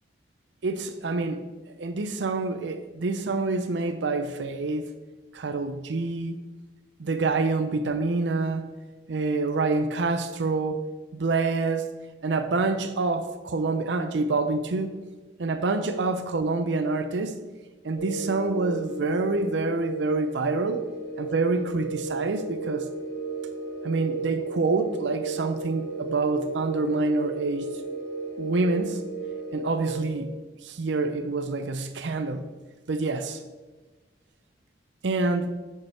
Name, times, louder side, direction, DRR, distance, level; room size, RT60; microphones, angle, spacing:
voice 1, 0.6-1.5 1.8-4.9 5.3-6.4 7.0-8.6 9.1-10.8 11.1-11.9 12.2-15.0 15.4-17.4 17.8-20.8 21.2-22.9 23.8-27.7 28.4-29.0 29.5-30.3 30.6-32.5 32.9-33.4 35.0-35.6, right 3 dB, 80° right, 9 dB, 0.5 m, -27 dB
sound 1, 18.0-30.1, right 4 dB, 25° left, 2.4 m, -34 dB
9.7 x 6.5 x 3.3 m, 1.3 s
head